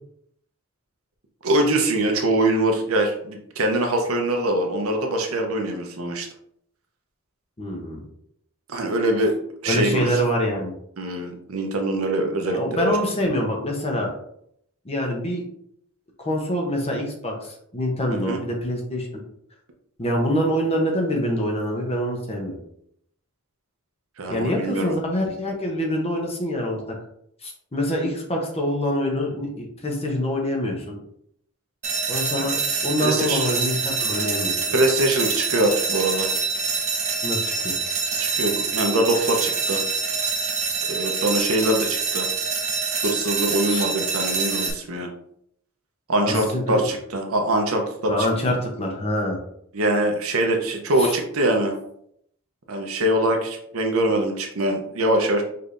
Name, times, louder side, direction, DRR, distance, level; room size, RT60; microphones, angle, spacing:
voice 1, 1.4-6.3 8.7-9.4 9.6-10.2 11.0-13.0 18.1-18.4 24.2-24.9 32.4-32.5 33.0-33.5 34.7-36.3 38.2-39.8 40.9-42.3 43.0-45.1 46.1-48.6 49.7-51.7 52.7-55.4, right 1 dB, 70° right, 3 dB, 0.8 m, -23 dB
voice 2, 7.6-8.0 9.6-10.7 12.5-14.1 14.8-15.4 16.2-19.1 20.0-22.6 24.3-26.8 27.4-31.0 32.1-32.6 32.8-34.5 37.2-37.8 43.7-43.9 46.3-46.8 48.1-49.4 51.0-51.1, equal, 30° left, 0 dB, 0.8 m, -25 dB
sound 1, 31.8-44.7, right 5 dB, 30° right, 0.6 m, -26 dB
5.2 x 3.3 x 2.6 m, 0.71 s
head